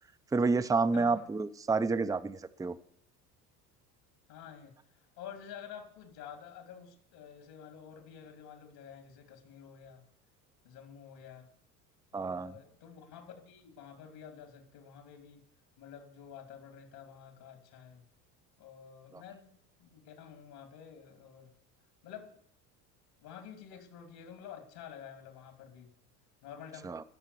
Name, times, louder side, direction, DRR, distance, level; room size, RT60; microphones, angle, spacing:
voice 1, 0.3-2.8 12.1-12.5 26.8-27.0, right 4 dB, 5° right, 10 dB, 0.6 m, -29 dB
voice 2, 4.3-4.8 5.2-10.1 10.6-11.5 12.1-15.4 15.8-18.1 18.6-21.5 22.0-22.4 23.2-25.9 26.4-26.9, left 8 dB, 65° left, 5 dB, 3.0 m, -50 dB
15.0 x 6.6 x 6.9 m, 0.68 s
hypercardioid pair, 70°, 48 cm